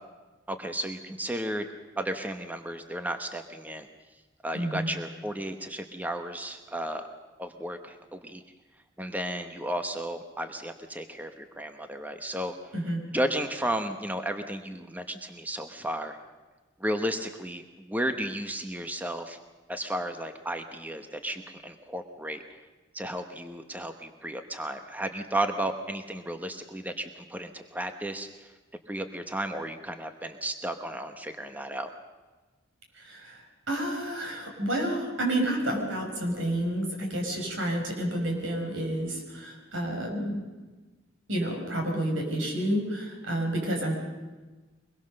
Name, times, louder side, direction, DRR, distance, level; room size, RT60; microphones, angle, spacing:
voice 1, 0.5-1.6 2.0-3.9 4.4-7.1 7.4-8.4 9.0-12.6 13.1-16.2 16.8-19.4 19.7-22.4 22.9-28.3 28.9-31.9, right 1 dB, 10° right, 7 dB, 1.0 m, -33 dB
voice 2, 4.5-4.9 12.7-13.0 32.9-40.4 41.3-43.9, right 1 dB, 85° right, 2 dB, 5.7 m, -30 dB
24.0 x 21.0 x 6.5 m, 1.2 s
head